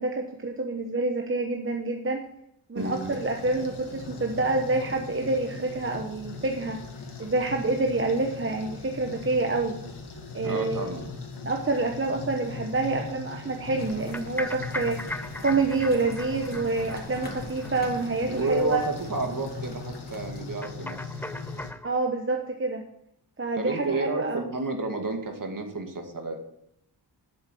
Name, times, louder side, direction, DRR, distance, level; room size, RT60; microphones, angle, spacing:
voice 1, 0.0-2.3 2.7-6.8 7.2-9.8 10.3-11.0 11.4-18.8 21.8-22.8 23.4-24.5, right 3 dB, 30° right, 2 dB, 1.1 m, -27 dB
sound 1, 2.8-21.7, left 4 dB, 75° left, 1.9 m, -39 dB
voice 2, 2.8-3.1 10.4-11.0 18.3-21.0 23.5-26.4, right 3 dB, 50° right, 3 dB, 2.1 m, -31 dB
sound 2, 13.8-20.5, left 1 dB, 20° left, 2.9 m, -46 dB
sound 3, 13.9-18.4 18.7-18.8 19.1-19.2 19.5-19.6 20.6-21.9, left 1 dB, 5° left, 0.4 m, -38 dB
8.3 x 7.5 x 7.7 m, 0.79 s
wide cardioid pair, 85°, 41 cm